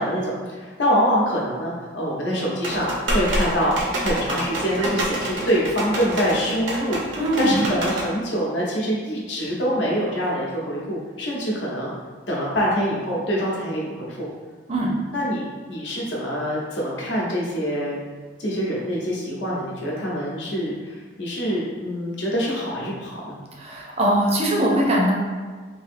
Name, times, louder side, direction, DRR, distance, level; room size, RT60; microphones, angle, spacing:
voice 1, 0.0-7.0 7.4-11.9 12.3-14.3 15.1-18.0 18.4-23.3, equal, 75° left, -5 dB, 0.8 m, -25 dB
sound 1, 2.6-8.1, right 1 dB, 75° right, 0.7 m, -27 dB
voice 2, 7.1-7.6 14.7-14.9 23.6-25.1, right 1 dB, 35° right, -2 dB, 0.5 m, -21 dB
3.5 x 2.6 x 2.6 m, 1.5 s
head